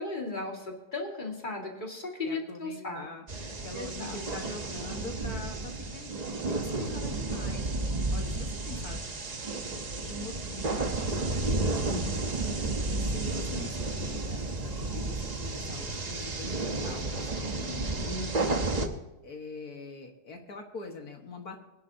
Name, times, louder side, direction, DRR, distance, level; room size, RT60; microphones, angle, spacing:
voice 1, 0.0-3.1 3.4-3.5 3.7-4.2 11.9-12.3 18.1-18.6, left 2 dB, 25° left, 0 dB, 2.2 m, -36 dB
voice 2, 2.2-3.2 3.6-6.1 6.5-7.7 8.1-9.1 9.9-11.9 13.0-18.5 19.2-21.6, left 3 dB, 55° left, 3 dB, 1.9 m, -44 dB
sound 1, 3.3-18.9, right 2 dB, 30° right, 0.8 m, -32 dB
sound 2, 10.8-17.4, right 1 dB, 60° right, 3.3 m, -44 dB
24.0 x 10.5 x 2.8 m, 1.0 s
omnidirectional pair, 2.1 m